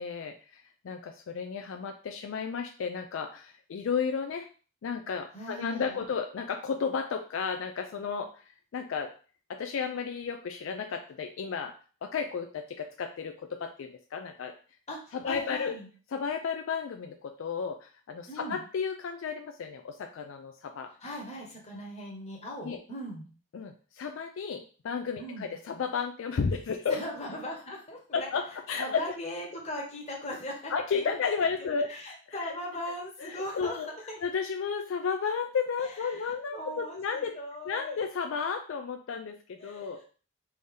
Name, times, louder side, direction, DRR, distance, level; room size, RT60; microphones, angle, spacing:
voice 1, 0.0-4.5 4.8-8.4 8.7-9.1 9.5-11.7 12.0-14.5 15.1-15.8 16.1-20.9 22.6-22.8 23.5-27.0 28.1-29.1 30.7-31.9 32.4-32.5 33.2-33.9 34.2-37.3 37.7-40.0, left 6 dB, 75° left, 5 dB, 0.4 m, -33 dB
voice 2, 5.3-6.0 14.9-15.9 18.3-18.6 21.0-23.3 25.2-25.5 26.9-28.3 28.8-31.1 31.6-34.2 35.8-38.0 39.6-40.0, equal, 35° left, 0 dB, 1.0 m, -39 dB
3.4 x 2.7 x 3.6 m, 0.38 s
head